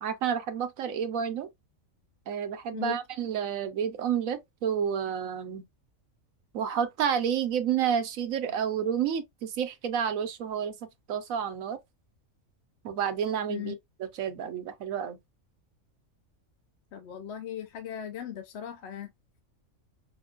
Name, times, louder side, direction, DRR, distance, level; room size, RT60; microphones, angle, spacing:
voice 1, 0.0-1.5 2.3-5.6 6.5-11.8 12.8-13.7 14.0-15.2, right 8 dB, 80° right, 1.1 m, -30 dB
voice 2, 16.9-19.1, left 10 dB, 65° left, 0.8 m, -38 dB
5.8 x 2.2 x 2.4 m
omnidirectional pair, 1.4 m